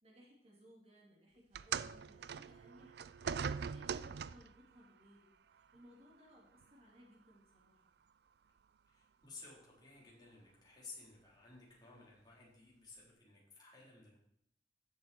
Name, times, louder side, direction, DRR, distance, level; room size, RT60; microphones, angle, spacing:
voice 1, 0.0-3.3 3.7-7.8, equal, 35° right, -3 dB, 2.7 m, -63 dB
sound 1, 1.5-4.6 5.6-5.8 6.6-6.7, right 6 dB, 65° right, 0.4 m, -41 dB
voice 2, 8.9-14.2, left 3 dB, 25° left, -5 dB, 4.0 m, -56 dB
15.0 x 6.8 x 4.5 m, 0.73 s
head